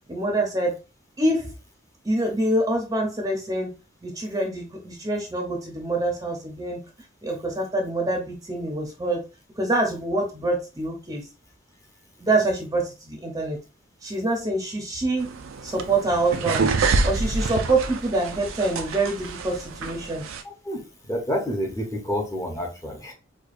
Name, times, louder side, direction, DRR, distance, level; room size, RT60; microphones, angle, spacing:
voice 1, 0.1-0.8 1.2-1.5 2.0-3.7 4.0-6.8 7.2-9.3 9.6-11.2 12.2-13.6 14.0-15.3 15.6-16.7 17.0-20.2, right 2 dB, 20° right, 1 dB, 0.7 m, -25 dB
sound 1, 15.2-20.4, right 4 dB, 85° right, 0.4 m, -27 dB
voice 2, 21.1-23.1, equal, 15° left, 1 dB, 0.8 m, -28 dB
4.8 x 2.3 x 2.5 m, 0.30 s
head